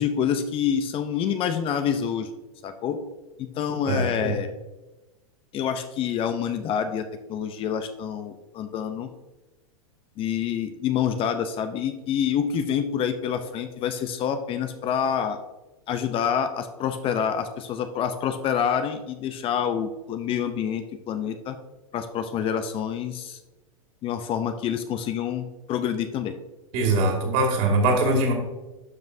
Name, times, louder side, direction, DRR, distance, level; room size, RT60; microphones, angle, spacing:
voice 1, 0.0-2.3 2.6-3.0 3.4-4.5 5.5-7.0 7.3-9.1 10.2-15.4 15.9-21.6 21.9-23.4 24.0-26.4, left 8 dB, 30° left, 8 dB, 0.6 m, -27 dB
voice 2, 3.9-4.3 26.7-28.3, right 2 dB, 50° right, 1 dB, 2.7 m, -22 dB
12.0 x 5.2 x 2.7 m, 1.1 s
hypercardioid pair, 110°, 18 cm